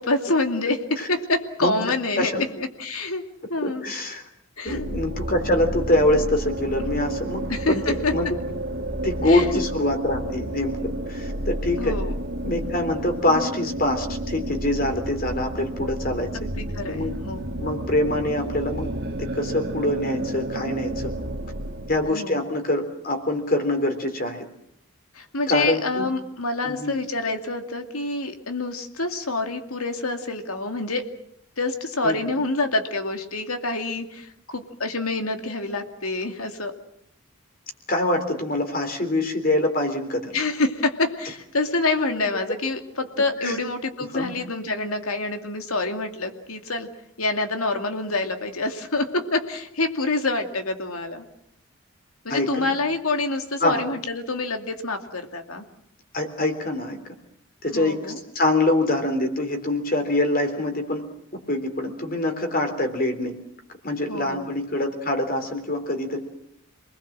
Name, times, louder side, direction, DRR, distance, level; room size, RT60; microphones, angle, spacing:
voice 1, 0.0-3.2 3.5-3.8 4.6-4.9 7.5-8.1 9.2-9.6 11.8-12.2 16.3-17.5 22.1-22.4 25.1-31.0 31.6-36.7 40.3-46.9 47.2-51.2 52.2-55.6 57.7-58.2 64.1-64.5, left 2 dB, 90° left, 6 dB, 2.5 m, -27 dB
voice 2, 3.6-4.2 4.6-8.3 9.0-12.0 12.4-16.5 16.9-17.1 17.6-18.9 19.2-21.1 21.9-24.4 25.5-26.1 26.6-27.0 32.0-32.2 37.9-40.4 43.4-43.6 44.1-44.3 52.3-52.7 53.6-53.8 56.1-57.0 57.6-58.0 58.3-61.0 61.5-63.4 63.8-66.2, left 1 dB, 40° left, 5 dB, 3.6 m, -24 dB
sound 1, 4.7-22.1, right 1 dB, 50° right, 2.0 m, -31 dB
28.0 x 20.5 x 7.6 m, 0.74 s
head